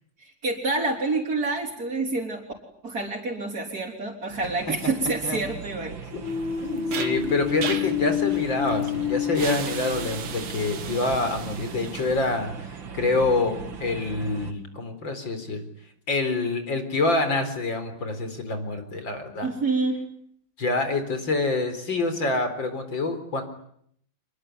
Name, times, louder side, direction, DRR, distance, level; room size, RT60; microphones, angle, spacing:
voice 1, 0.2-2.4 2.8-5.9 19.4-20.0, right 3 dB, 45° right, -4 dB, 4.7 m, -27 dB
sound 1, 4.3-14.5, right 5 dB, 65° right, 2.8 m, -39 dB
sound 2, 6.2-10.5, left 9 dB, 80° left, 3.8 m, -28 dB
sound 3, 6.3-12.4, right 7 dB, 85° right, 2.5 m, -36 dB
voice 2, 6.6-15.6 16.1-19.5 20.6-23.4, left 3 dB, 65° left, 8 dB, 4.8 m, -26 dB
26.5 x 22.5 x 9.6 m, 0.69 s
omnidirectional pair, 2.3 m